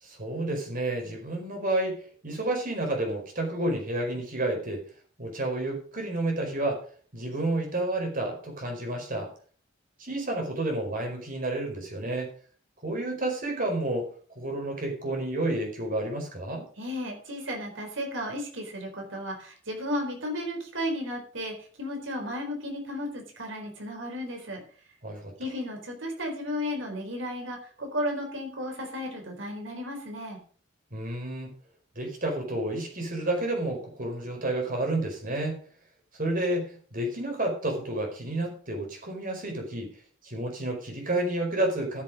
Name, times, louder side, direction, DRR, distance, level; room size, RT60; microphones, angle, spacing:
voice 1, 0.0-4.8 5.2-6.8 7.1-9.3 10.0-12.3 12.8-14.1 14.4-16.6 25.0-25.3 30.9-31.5 31.9-35.6 36.2-39.9 40.2-42.0, right 1 dB, 45° right, 2 dB, 4.7 m, -30 dB
voice 2, 16.8-24.6 25.4-30.4, equal, 75° right, 2 dB, 4.2 m, -34 dB
14.0 x 7.5 x 5.1 m, 0.43 s
head